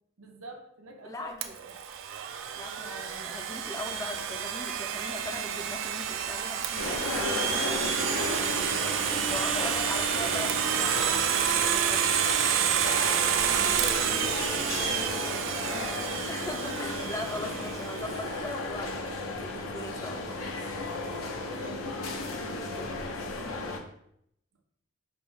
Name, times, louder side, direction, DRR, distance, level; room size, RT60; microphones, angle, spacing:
voice 1, 0.2-1.5 8.0-9.8 10.1-10.7 13.5-16.3 16.6-16.8 21.5-22.3, right 1 dB, 85° right, 2 dB, 0.8 m, -47 dB
voice 2, 1.0-1.6 2.5-7.8 9.3-11.0 11.4-12.3 15.3-15.5 16.3-20.4 22.4-23.3, left 2 dB, 15° left, 5 dB, 0.3 m, -40 dB
Domestic sounds home sounds, 1.4-18.2, right 8 dB, 65° right, 0.3 m, -29 dB
sound 1, 6.8-23.8, left 2 dB, 85° left, 0.6 m, -34 dB
5.2 x 2.6 x 3.1 m, 0.73 s
head